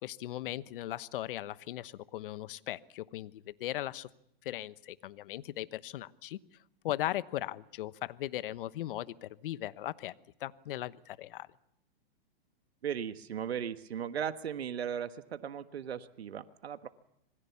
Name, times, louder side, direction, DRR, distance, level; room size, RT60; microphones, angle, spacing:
voice 1, 0.0-4.1 4.4-6.4 6.8-10.1 10.4-11.5, left 14 dB, 60° left, 17 dB, 1.1 m, -38 dB
voice 2, 12.8-16.9, right 8 dB, 85° right, 11 dB, 1.4 m, -37 dB
26.5 x 21.5 x 7.1 m, 0.78 s
hypercardioid pair, 130°, 31 cm